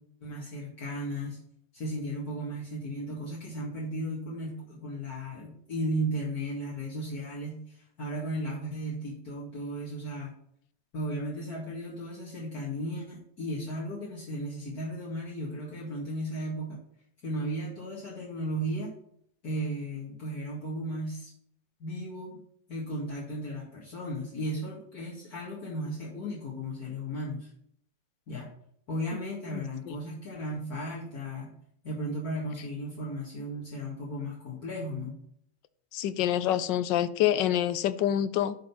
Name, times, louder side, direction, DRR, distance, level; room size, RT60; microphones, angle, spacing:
voice 1, 0.2-1.4 1.7-10.3 10.9-16.8 17.2-19.0 19.4-21.3 21.8-22.4 22.7-27.5 28.3-28.5 28.9-31.5 31.8-35.2, equal, 60° left, -7 dB, 2.5 m, -35 dB
voice 2, 29.5-30.0 35.9-38.6, left 11 dB, 90° left, 13 dB, 1.3 m, -27 dB
10.5 x 3.9 x 5.9 m, 0.70 s
omnidirectional pair, 1.9 m